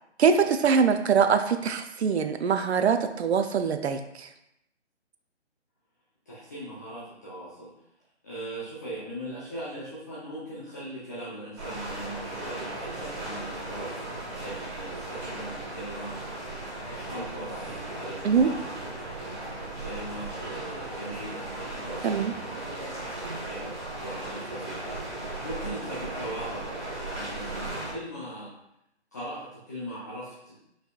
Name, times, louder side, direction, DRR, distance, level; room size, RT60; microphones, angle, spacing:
voice 1, 0.2-4.3 18.2-18.5 22.0-22.3, right 6 dB, 65° right, 8 dB, 0.5 m, -23 dB
voice 2, 6.3-7.7 8.2-16.2 17.1-17.7 18.0-18.8 19.8-23.1 23.5-25.0 25.4-28.5 29.1-30.6, right 1 dB, 15° left, -10 dB, 0.5 m, -40 dB
sound 1, 11.6-27.9, right 2 dB, 25° right, 1.4 m, -36 dB
5.5 x 4.1 x 2.3 m, 0.80 s
figure-of-eight pair, 145°, 35 cm